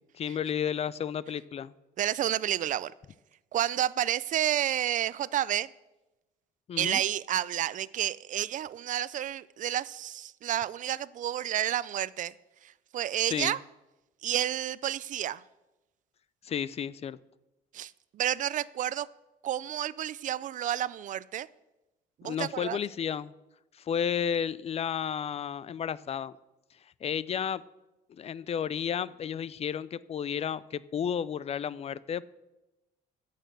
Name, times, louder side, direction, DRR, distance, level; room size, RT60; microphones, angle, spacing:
voice 1, 0.1-1.7 6.7-7.0 13.2-13.6 16.4-17.2 22.2-23.3 23.8-26.3 27.0-27.6 28.1-32.2, left 8 dB, 40° left, 0.4 m, -32 dB
voice 2, 2.0-2.9 3.5-5.7 6.8-12.3 12.6-13.6 14.2-15.4 17.7-19.1 19.4-21.5 22.2-22.8, right 11 dB, 50° right, 0.4 m, -30 dB
15.5 x 6.6 x 6.6 m
cardioid pair, 110°, 17 cm